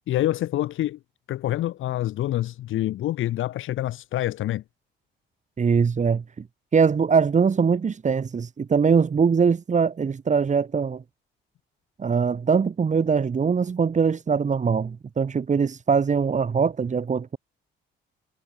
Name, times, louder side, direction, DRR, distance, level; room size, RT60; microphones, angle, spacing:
voice 1, 0.1-1.0 1.3-4.6, left 14 dB, 80° left, 3.1 m, -26 dB
voice 2, 5.6-6.2 6.7-11.0 12.0-17.4, right 6 dB, 35° right, 2.2 m, -22 dB
cardioid pair, 90°, 20 cm